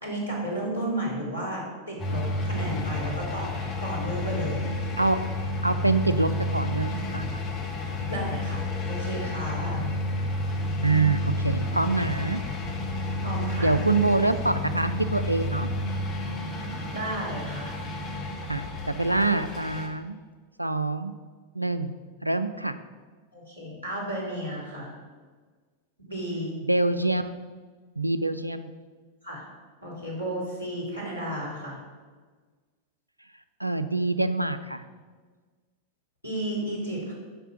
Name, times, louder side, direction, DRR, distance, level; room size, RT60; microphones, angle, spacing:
voice 1, 0.0-4.7 8.1-9.9 13.2-13.8 16.9-17.8 23.3-24.9 26.0-26.6 29.2-29.4 29.8-31.8 36.2-37.1, right 1 dB, 90° left, -5 dB, 3.0 m, -33 dB
sound 1, 2.0-19.9, left 1 dB, 30° left, 1.4 m, -30 dB
voice 2, 5.6-7.4 10.8-12.4 13.6-15.7 18.5-20.2 20.6-21.1 21.5-21.9 22.2-22.8 26.6-27.2 28.0-28.7 33.6-34.8, right 2 dB, 85° right, 11 dB, 0.4 m, -25 dB
6.8 x 5.5 x 7.2 m, 1.5 s
figure-of-eight pair, 90°, 0 cm